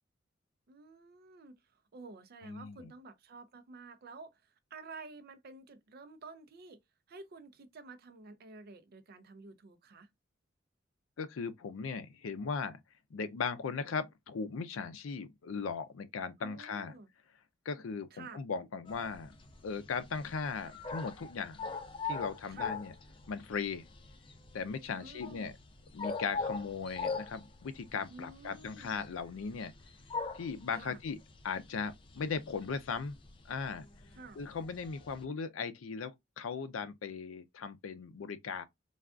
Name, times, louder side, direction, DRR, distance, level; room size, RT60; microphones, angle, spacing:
voice 1, 0.7-4.4 4.7-6.8 7.1-10.1 16.4-17.1 18.1-18.4 22.5-22.8 25.0-25.5 28.1-29.0 30.7-31.0 34.2-34.4, right 3 dB, 50° right, 0.5 m, -51 dB
voice 2, 2.4-2.9 11.2-12.8 13.1-16.9 17.7-19.3 19.6-21.7 22.1-22.9 23.3-23.9 24.5-25.6 25.9-29.7 30.3-31.2 31.4-33.2 33.5-33.9 34.4-38.6, left 5 dB, 85° left, 0.4 m, -38 dB
sound 1, 18.9-35.2, left 4 dB, 25° left, 0.4 m, -42 dB
3.4 x 2.3 x 2.4 m
head